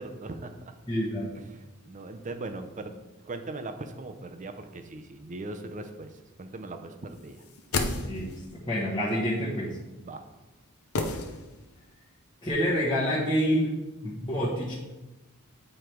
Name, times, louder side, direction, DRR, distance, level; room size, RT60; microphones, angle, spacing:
voice 1, 0.0-0.7 1.4-3.0 3.2-7.4 10.0-10.2, right 2 dB, 35° right, 8 dB, 0.6 m, -39 dB
voice 2, 0.9-1.3 8.0-9.8 12.4-13.7 14.0-14.7, equal, 20° left, -8 dB, 1.3 m, -27 dB
sound 1, 7.3-8.6 10.9-11.9 12.1-12.2, left 3 dB, 75° left, 0.7 m, -32 dB
9.2 x 3.3 x 4.5 m, 1.1 s
head